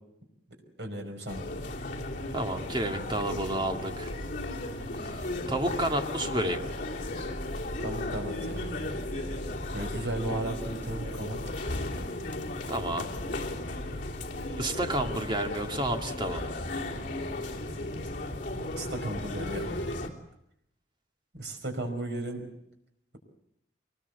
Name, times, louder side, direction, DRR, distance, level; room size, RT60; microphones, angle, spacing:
voice 1, 0.8-1.5 7.8-8.6 9.7-11.4 18.7-19.7 21.4-22.4, right 1 dB, 80° right, 4 dB, 5.2 m, -34 dB
sound 1, 1.3-20.1, left 1 dB, 45° left, 3.2 m, -35 dB
voice 2, 2.3-4.2 4.9-6.8 12.7-13.1 14.6-16.6, right 1 dB, 25° right, 4 dB, 2.2 m, -31 dB
24.0 x 20.0 x 8.1 m, 0.77 s
head